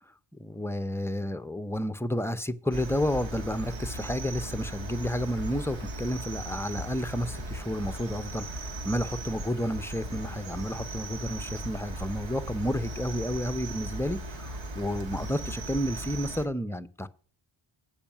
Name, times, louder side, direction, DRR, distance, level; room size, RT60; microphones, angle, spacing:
voice 1, 0.4-17.1, equal, 5° left, 0.6 m, -31 dB
Cricket, 2.7-16.5, right 1 dB, 70° right, 1.9 m, -37 dB
8.7 x 5.6 x 7.2 m
cardioid pair, 65°, 47 cm